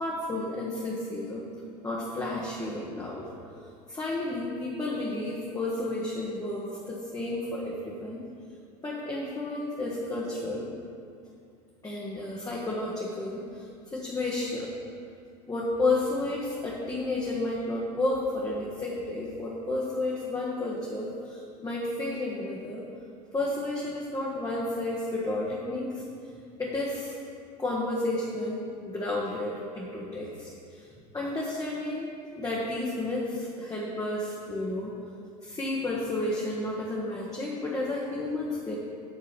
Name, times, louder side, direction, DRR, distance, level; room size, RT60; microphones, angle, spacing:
voice 1, 0.0-1.4 1.8-3.3 3.9-8.2 8.8-10.7 11.8-13.6 13.9-14.7 15.5-22.9 23.3-25.9 26.6-27.1 27.6-30.8 31.1-35.0 35.4-38.8, left 2 dB, 15° left, -5 dB, 1.3 m, -31 dB
8.9 x 3.7 x 6.7 m, 2.4 s
hypercardioid pair, 80°, 21 cm